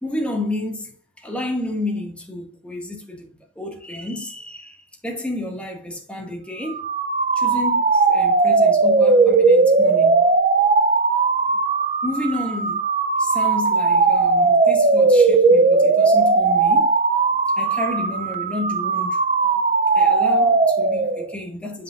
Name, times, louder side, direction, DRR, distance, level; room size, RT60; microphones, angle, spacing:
voice 1, 0.0-6.9 7.4-10.3 12.0-12.8 13.2-17.0 17.6-19.2 19.9-21.8, left 2 dB, 5° left, 1.8 m, -30 dB
sound 1, 6.7-21.3, right 4 dB, 40° right, 0.5 m, -18 dB
8.2 x 5.5 x 2.5 m
head